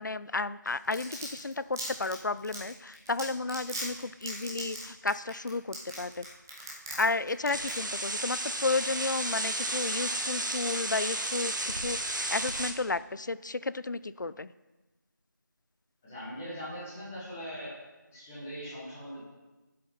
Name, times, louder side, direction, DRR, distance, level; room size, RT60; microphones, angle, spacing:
voice 1, 0.0-6.3 7.0-14.5, left 3 dB, 65° left, 16 dB, 0.5 m, -32 dB
Domestic sounds home sounds, 0.7-7.0 7.3-7.7 8.0-8.1, right 1 dB, 10° right, 0.8 m, -38 dB
sound 1, 7.5-12.7, right 1 dB, 70° right, 1.3 m, -33 dB
voice 2, 16.0-17.8 18.1-19.3, equal, 5° left, -8 dB, 1.2 m, -41 dB
11.5 x 7.6 x 4.1 m, 1.1 s
figure-of-eight pair, 175°, 11 cm